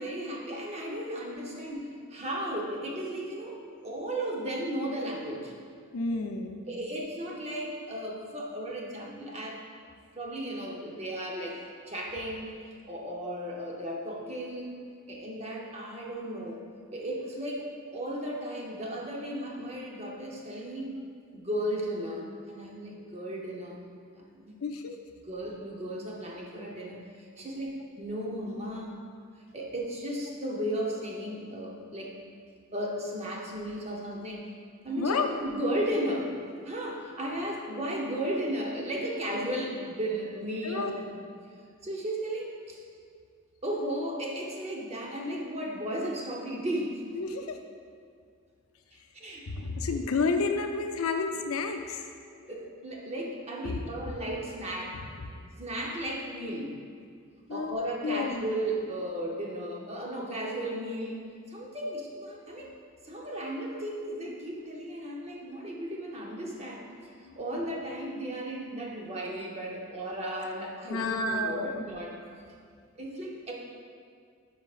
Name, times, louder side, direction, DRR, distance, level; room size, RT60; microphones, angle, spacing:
voice 1, 0.0-5.5 6.7-9.6 10.2-11.6 11.9-12.5 12.8-14.7 15.1-16.6 16.9-21.0 21.3-23.9 24.3-24.6 25.3-27.7 28.0-29.0 29.5-32.2 32.7-34.5 34.8-36.3 36.6-41.2 41.8-42.8 43.6-47.0 49.1-49.5 49.9-50.0 52.5-55.0 55.6-56.8 57.5-61.2 61.5-62.7 63.0-66.9 67.4-72.2 73.0-73.5, right 1 dB, 30° right, -2 dB, 0.8 m, -35 dB
voice 2, 5.9-6.6 24.6-24.9 35.0-35.3 40.6-41.0 47.1-47.6 49.5-52.1 52.4-52.5 53.6-53.8 54.1-54.2 57.5-57.7 58.0-58.4 62.6-62.7 67.2-67.4 70.9-71.8, left 4 dB, 75° left, 5 dB, 0.5 m, -31 dB
9.5 x 4.8 x 2.5 m, 2.2 s
head